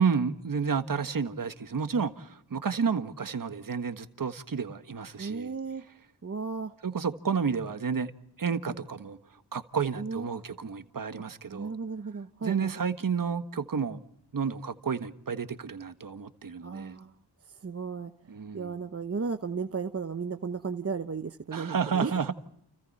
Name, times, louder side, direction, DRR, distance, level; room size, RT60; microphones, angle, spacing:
voice 1, 0.0-5.5 6.8-8.1 8.4-11.7 12.4-14.0 14.3-17.0 18.3-18.8 21.5-22.3, right 6 dB, 50° right, 1.5 m, -31 dB
voice 2, 5.2-5.8 6.2-6.7 10.0-10.4 11.5-12.9 16.6-17.1 17.6-18.1 18.5-22.1, right 5 dB, 35° right, 0.9 m, -34 dB
29.5 x 29.5 x 4.2 m
wide cardioid pair, 135°, 43 cm